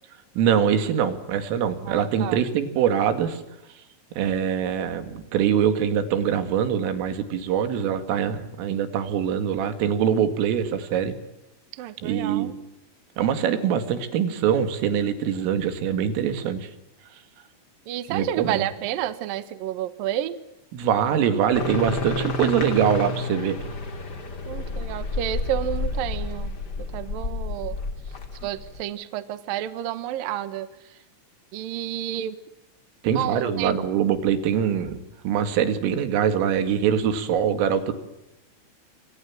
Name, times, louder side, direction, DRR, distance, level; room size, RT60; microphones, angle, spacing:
voice 1, 0.4-3.4 4.2-11.1 12.0-12.5 13.2-16.7 18.1-18.6 20.7-23.6 33.0-35.0 35.2-37.9, right 8 dB, 85° right, 10 dB, 4.8 m, -23 dB
voice 2, 1.8-2.4 11.7-12.5 17.9-20.4 24.5-26.5 26.8-27.8 28.4-31.0 31.5-32.4 33.1-33.7, right 11 dB, 65° right, 13 dB, 2.3 m, -30 dB
sound 1, 21.5-28.8, left 2 dB, 30° left, 2.0 m, -30 dB
27.0 x 26.0 x 7.4 m, 0.88 s
omnidirectional pair, 5.7 m